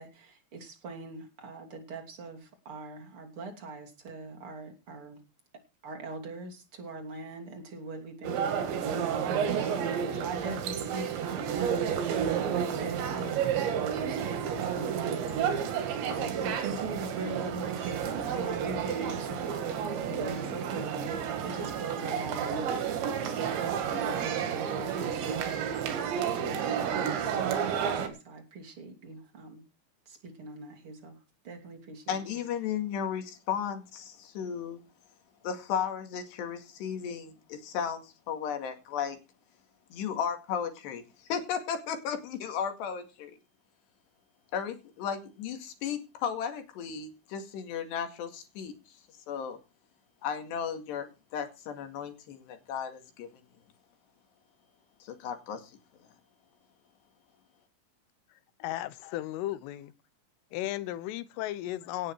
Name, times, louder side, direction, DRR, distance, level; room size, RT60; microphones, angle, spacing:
voice 1, 0.0-5.2 5.8-29.6 30.1-31.2 31.4-32.4, right 2 dB, 35° right, 2.9 m, -42 dB
sound 1, 8.2-28.1, right 8 dB, 65° right, 4.1 m, -31 dB
voice 2, 32.1-34.8 35.4-39.2 39.9-43.3 44.5-48.7 49.3-49.6 50.2-53.3 55.0-55.7, left 7 dB, 60° left, 4.0 m, -35 dB
voice 3, 58.6-59.9 60.5-62.1, left 14 dB, 80° left, 3.4 m, -35 dB
17.5 x 9.5 x 4.6 m
omnidirectional pair, 5.9 m